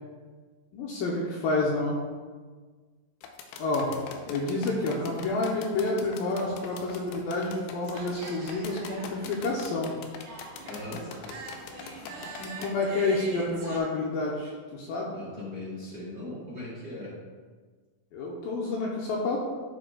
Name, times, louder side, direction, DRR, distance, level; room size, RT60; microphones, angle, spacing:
voice 1, 0.7-2.0 3.6-3.9 4.3-9.9 12.4-15.1 18.1-19.4, left 2 dB, 75° left, -3 dB, 2.3 m, -29 dB
sound 1, 3.2-12.7, left 6 dB, 90° left, 2.8 m, -43 dB
sound 2, 3.9-13.8, right 3 dB, 70° right, 2.9 m, -45 dB
voice 2, 10.6-11.0 15.1-17.1, left 2 dB, 35° right, -8 dB, 2.3 m, -39 dB
11.5 x 6.7 x 2.3 m, 1.5 s
omnidirectional pair, 4.6 m